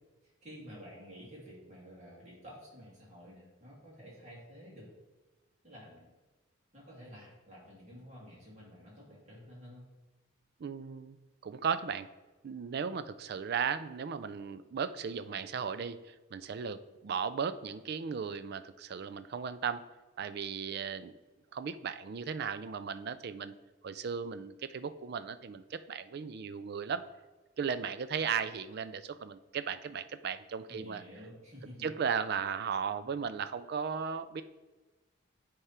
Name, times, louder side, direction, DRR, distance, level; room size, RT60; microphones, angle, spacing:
voice 1, 0.2-4.9 5.6-6.1 6.7-9.9 30.7-31.9, equal, 35° right, -5 dB, 2.5 m, -51 dB
voice 2, 10.6-11.2 11.4-12.1 12.4-19.8 20.2-21.2 21.5-23.5 23.8-27.0 27.6-31.0 31.8-34.4, right 6 dB, 50° right, 12 dB, 0.3 m, -36 dB
9.9 x 3.6 x 4.3 m, 1.2 s
head